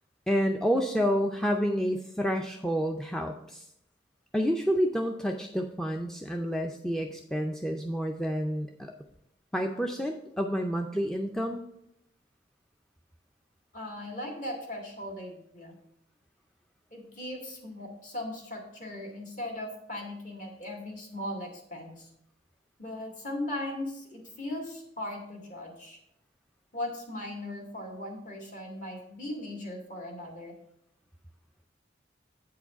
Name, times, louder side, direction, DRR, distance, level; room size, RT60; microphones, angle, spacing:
voice 1, 0.3-3.7 4.3-8.9 9.5-11.6, equal, 5° left, 2 dB, 0.4 m, -29 dB
voice 2, 13.7-15.8 16.9-22.1 22.8-26.0 26.7-30.5, left 1 dB, 45° left, 1 dB, 1.9 m, -38 dB
8.3 x 4.7 x 5.7 m, 0.79 s
head